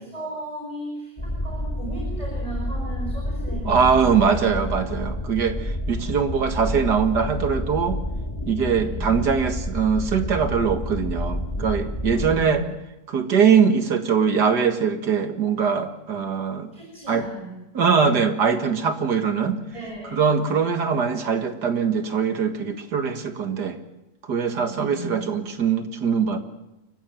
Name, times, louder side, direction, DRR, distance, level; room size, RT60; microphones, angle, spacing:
voice 1, 0.1-4.3 6.2-6.4 8.6-9.2 12.1-12.7 16.7-17.5 19.7-20.3 24.5-25.3, right 1 dB, 20° right, -1 dB, 5.1 m, -36 dB
sound 1, 1.2-12.4, left 1 dB, 15° left, 2.5 m, -29 dB
voice 2, 3.7-8.0 8.5-12.7 13.1-16.7 17.1-17.3 17.7-19.6 20.1-23.8 24.3-26.4, right 6 dB, 80° right, 7 dB, 2.4 m, -22 dB
28.5 x 15.0 x 7.5 m, 0.95 s
omnidirectional pair, 1.7 m